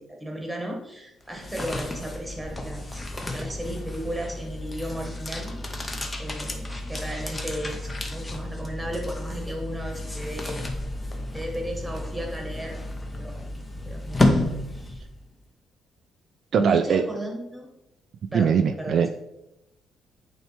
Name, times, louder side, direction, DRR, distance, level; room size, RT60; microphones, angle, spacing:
voice 1, 0.0-5.6 6.2-10.6 11.3-12.8 13.1-13.5 13.8-15.0 16.5-17.7 18.3-19.1, right 1 dB, 5° right, 0 dB, 1.4 m, -34 dB
sound 1, 1.2-15.3, left 1 dB, 20° left, 0.7 m, -31 dB
voice 2, 16.5-17.0 18.3-19.1, right 7 dB, 55° right, 7 dB, 0.3 m, -21 dB
9.2 x 3.2 x 3.3 m, 0.87 s
cardioid pair, 135°, 0 cm